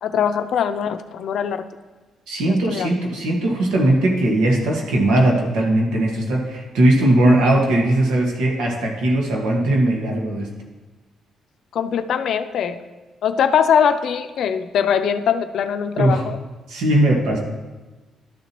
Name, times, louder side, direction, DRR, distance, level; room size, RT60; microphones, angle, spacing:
voice 1, 0.0-1.7 2.5-2.9 11.7-12.8 13.2-16.4, left 8 dB, 70° left, 9 dB, 0.5 m, -21 dB
voice 2, 2.3-10.5 16.0-16.2 16.7-17.4, right 1 dB, 85° right, 0 dB, 1.6 m, -19 dB
12.0 x 6.9 x 3.0 m, 1.2 s
cardioid pair, 90°, 0 cm